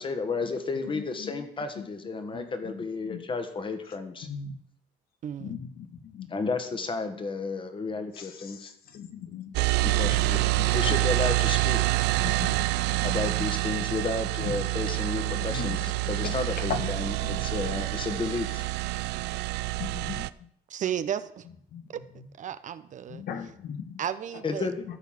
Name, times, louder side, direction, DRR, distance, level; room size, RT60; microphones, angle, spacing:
voice 1, 0.0-4.3 6.3-8.7 9.8-10.4 10.7-12.0 13.0-18.7 24.4-24.8, left 4 dB, 30° left, 8 dB, 1.6 m, -32 dB
voice 2, 0.9-1.4 1.8-1.9 2.3-2.7 3.0-3.2 4.2-4.6 5.4-6.3 8.1-9.5 9.8-11.0 12.2-13.1 13.4-13.5 14.4-14.5 15.2-16.9 17.2-17.4 19.8-20.2 21.7-21.9 23.1-24.0, left 7 dB, 60° left, 8 dB, 1.4 m, -38 dB
voice 3, 5.2-5.5 20.7-21.5 21.9-22.0 22.4-23.3 24.0-24.7, right 9 dB, 50° right, 13 dB, 0.7 m, -33 dB
sound 1, 9.5-20.3, right 20 dB, 85° right, 0.4 m, -27 dB
13.0 x 4.6 x 7.5 m, 0.70 s
cardioid pair, 110°, 17 cm